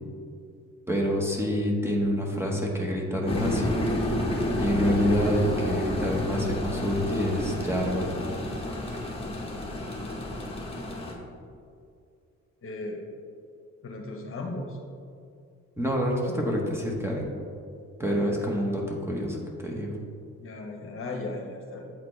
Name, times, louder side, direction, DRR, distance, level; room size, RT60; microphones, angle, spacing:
voice 1, 0.9-3.7 4.6-8.1 15.8-17.3 18.0-19.4 19.6-19.9, equal, 10° right, -2 dB, 1.0 m, -27 dB
sound 1, 3.3-11.1, left 1 dB, 20° left, 1.1 m, -30 dB
voice 2, 12.6-13.0 13.8-14.8 18.0-18.6 20.4-21.9, left 2 dB, 45° left, 1 dB, 1.0 m, -37 dB
8.6 x 4.0 x 3.2 m, 2.4 s
cardioid pair, 90°, 30 cm